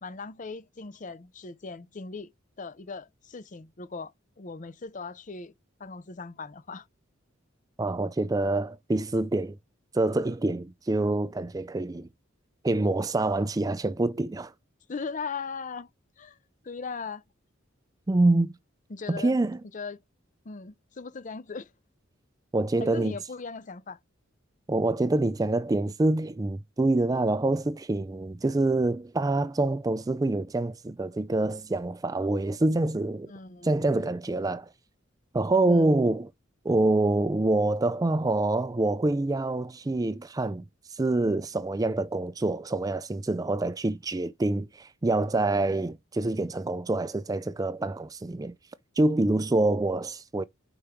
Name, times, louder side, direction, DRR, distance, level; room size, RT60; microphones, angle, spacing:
voice 1, 0.0-2.3 2.6-4.1 4.4-5.5 5.8-6.9 14.9-15.9 16.2-16.4 16.6-17.2 18.9-19.4 19.7-20.0 20.4-21.7 22.8-24.0 33.2-34.0 35.7-35.9, left 4 dB, 40° left, 0.6 m, -39 dB
voice 2, 7.8-9.6 9.9-12.1 12.6-14.5 18.1-18.5 19.1-19.6 22.5-23.2 24.7-33.3 33.6-34.7 35.3-36.3 36.6-48.5 49.0-50.4, right 2 dB, 20° right, 0.4 m, -26 dB
5.1 x 4.9 x 4.5 m
head